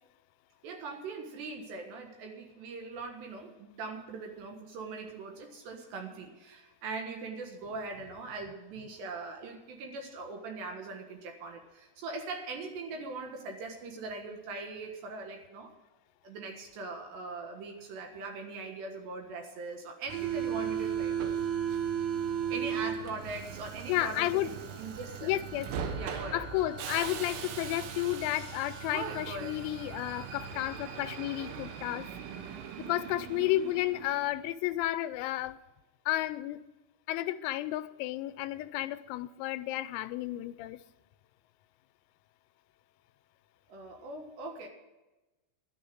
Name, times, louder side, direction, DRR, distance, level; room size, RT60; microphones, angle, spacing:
voice 1, 0.6-15.7 16.2-21.1 22.5-25.4 25.9-26.5 28.9-29.6 43.7-44.7, right 3 dB, 65° right, 3.4 m, -41 dB
Subway metro underground, 20.1-34.4, right 8 dB, 80° right, 3.9 m, -37 dB
voice 2, 23.9-24.5 25.2-25.7 26.3-32.1 32.8-35.6 36.1-36.6 37.1-40.8, left 15 dB, 85° left, 3.4 m, -32 dB
13.0 x 11.5 x 6.3 m
omnidirectional pair, 6.0 m